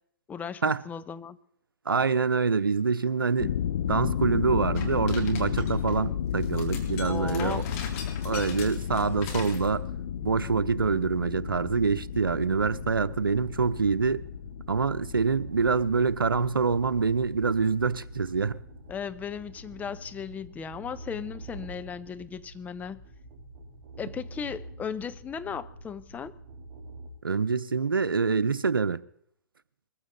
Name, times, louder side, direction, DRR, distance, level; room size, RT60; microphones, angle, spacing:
voice 1, 0.3-1.4 7.0-7.6 18.9-23.0 24.0-26.3, left 7 dB, 15° left, 0.8 m, -36 dB
voice 2, 1.9-3.6 3.9-7.6 8.2-9.8 10.2-14.2 14.7-18.6 27.2-29.0, right 5 dB, 90° right, 0.9 m, -26 dB
sound 1, 3.4-19.2, left 9 dB, 60° left, 0.7 m, -33 dB
sound 2, 4.8-6.0 6.4-9.7, left 5 dB, 40° left, 3.8 m, -40 dB
sound 3, 9.0-27.1, right 2 dB, 30° right, 4.4 m, -47 dB
22.0 x 15.0 x 4.0 m
hypercardioid pair, 125°, 11 cm